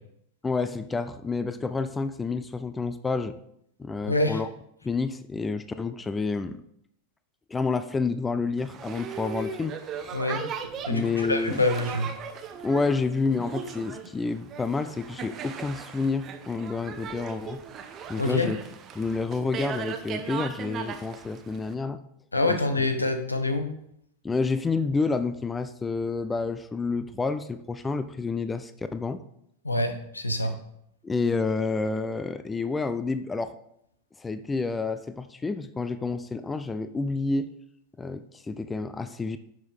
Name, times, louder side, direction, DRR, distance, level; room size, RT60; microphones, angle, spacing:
voice 1, 0.4-3.3 3.8-4.5 4.8-6.6 7.5-9.8 10.9-11.6 12.6-17.6 18.1-18.6 19.0-22.0 22.5-22.6 24.2-29.2 31.0-33.5 34.2-37.5 38.0-39.4, left 4 dB, 15° left, 12 dB, 0.5 m, -29 dB
voice 2, 4.1-4.4 10.1-10.4 10.9-12.1 18.2-18.5 22.3-23.7 29.6-30.5, left 2 dB, 80° left, 7 dB, 1.1 m, -26 dB
Boat Water vehicle, 8.6-21.7, right 6 dB, 30° right, 1.0 m, -38 dB
10.5 x 6.2 x 3.7 m, 0.74 s
figure-of-eight pair, 90°, 0 cm